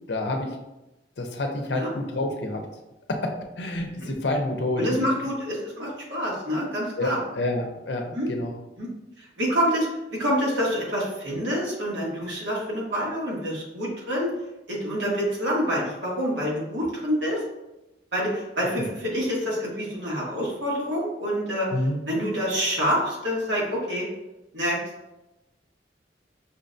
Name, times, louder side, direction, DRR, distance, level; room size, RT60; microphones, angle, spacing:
voice 1, 0.1-0.5 1.2-2.7 3.1-5.0 7.0-8.5 21.7-22.0, left 1 dB, 70° left, 3 dB, 0.6 m, -28 dB
voice 2, 4.8-7.2 8.1-8.3 8.8-8.9 9.2-9.9 10.1-14.3 14.7-17.4 18.1-21.7 22.1-24.0 24.5-24.8, equal, 90° right, -5 dB, 1.4 m, -27 dB
5.5 x 2.2 x 2.6 m, 0.96 s
head